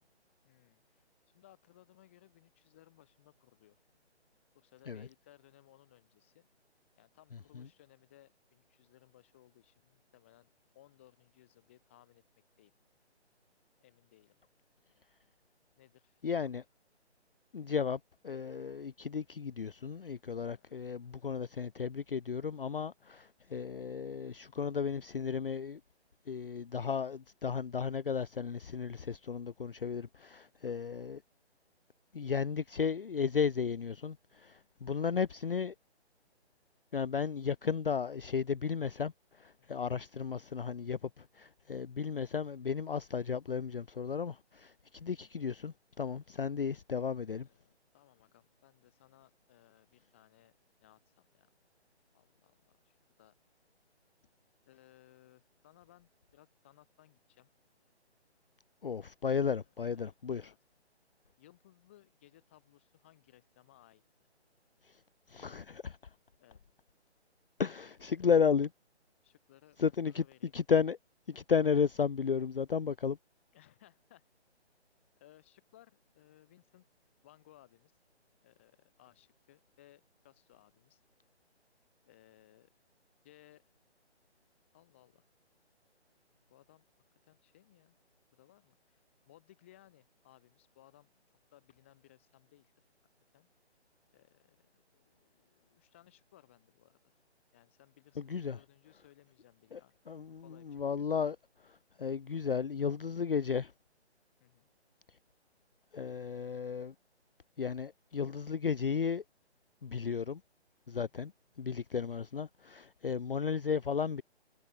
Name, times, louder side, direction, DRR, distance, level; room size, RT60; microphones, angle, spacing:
voice 1, 0.4-3.8 4.5-6.5 7.0-10.5 10.7-12.2 12.6-12.7 13.8-14.4 15.8-16.5 20.4-21.4 23.0-23.1 30.7-30.8 35.2-35.5 39.6-39.8 45.0-45.2 47.4-50.5 50.8-51.5 52.1-53.3 54.7-57.5 59.3-60.6 61.4-64.0 66.4-66.6 68.1-68.3 69.2-70.6 73.5-74.2 75.2-76.8 77.2-77.9 78.4-81.0 82.0-82.7 83.2-83.6 84.7-85.3 86.5-86.8 87.2-88.0 88.3-91.2 91.5-92.8 93.3-93.5 94.1-97.2 97.5-99.9 100.4-101.1 104.4-104.7 110.9-111.1, left 14 dB, 10° left, 2.1 m, -63 dB
voice 2, 16.2-16.6 17.5-25.8 26.3-31.2 32.1-35.7 36.9-39.1 39.4-47.5 58.8-60.5 65.3-66.0 67.6-68.7 69.8-70.2 70.5-71.0 71.3-73.2 98.3-98.6 99.7-99.8 100.1-101.4 101.7-103.7 105.9-106.9 107.6-109.2 109.8-110.4 110.9-111.3 111.6-114.2, left 6 dB, 55° left, 0.5 m, -34 dB
hypercardioid pair, 180°, 34 cm